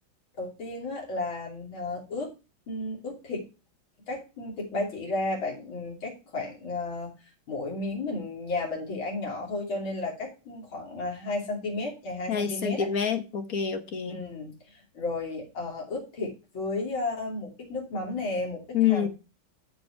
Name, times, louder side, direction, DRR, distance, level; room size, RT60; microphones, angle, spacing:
voice 1, 0.4-2.3 2.7-3.5 4.1-7.1 7.5-12.9 14.1-19.1, left 2 dB, 90° left, 3.9 m, -33 dB
voice 2, 12.3-14.2 18.7-19.1, left 8 dB, 50° left, 1.5 m, -27 dB
13.0 x 5.1 x 4.6 m
omnidirectional pair, 2.1 m